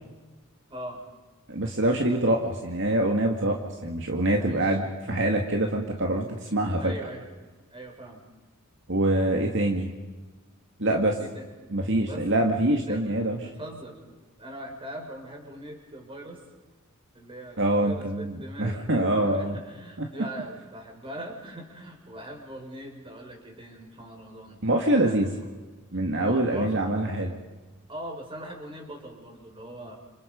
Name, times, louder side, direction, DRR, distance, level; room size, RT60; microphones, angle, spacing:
voice 1, 0.7-1.0 4.4-4.8 6.8-7.3 7.7-8.2 11.2-11.5 12.0-12.2 12.7-13.0 13.3-14.0 14.4-16.4 17.1-24.6 25.0-25.3 26.2-26.8 27.9-30.0, right 1 dB, 25° right, 2 dB, 5.9 m, -41 dB
voice 2, 1.5-6.9 8.9-9.9 10.8-11.2 11.7-13.4 17.6-19.6 24.6-25.3 25.9-27.4, right 1 dB, 55° right, 2 dB, 2.3 m, -25 dB
30.0 x 28.5 x 5.4 m, 1.2 s
head